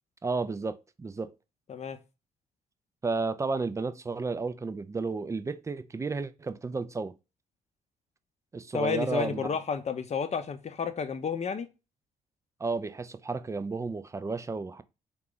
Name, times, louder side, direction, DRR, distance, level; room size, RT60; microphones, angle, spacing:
voice 1, 0.2-1.3 3.0-7.2 8.5-9.5 12.6-14.8, right 4 dB, 15° right, 0.4 m, -32 dB
voice 2, 8.7-11.7, left 5 dB, 35° left, 0.7 m, -31 dB
3.7 x 2.4 x 3.7 m
hypercardioid pair, 45°, 19 cm